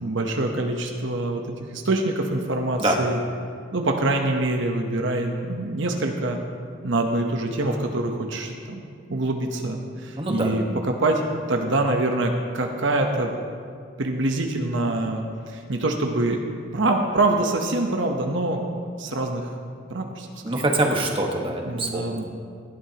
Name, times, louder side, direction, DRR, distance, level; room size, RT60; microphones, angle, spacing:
voice 1, 0.0-3.2 3.7-6.4 6.8-8.8 9.1-11.2 11.5-13.3 14.0-16.4 16.7-18.6 19.0-19.5 19.9-20.6 21.6-22.2, right 2 dB, 70° right, 3 dB, 1.0 m, -25 dB
voice 2, 10.2-10.5 20.4-22.2, right 1 dB, 25° right, 0 dB, 1.4 m, -24 dB
18.0 x 12.5 x 2.9 m, 2.2 s
head